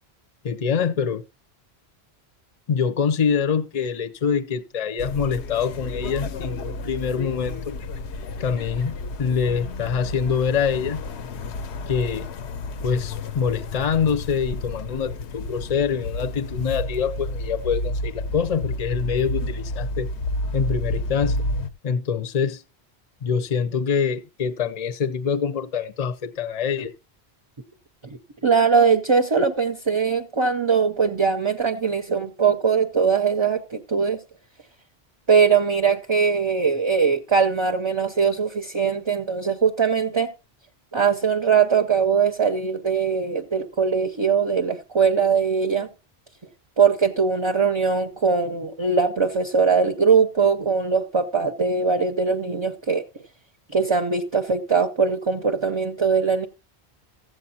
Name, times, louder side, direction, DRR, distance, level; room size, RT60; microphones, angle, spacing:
voice 1, 0.4-1.2 2.7-7.8 8.4-11.0 11.9-12.3 12.8-20.1 20.5-21.5 21.8-22.6 23.2-26.9, left 6 dB, 40° left, 0.6 m, -25 dB
sound 1, 5.0-21.7, left 2 dB, 85° left, 1.0 m, -31 dB
voice 2, 28.4-34.2 35.3-40.3 40.9-45.9 46.8-53.0 53.7-56.5, right 5 dB, 30° right, 0.7 m, -21 dB
15.0 x 7.8 x 2.8 m
omnidirectional pair, 1.1 m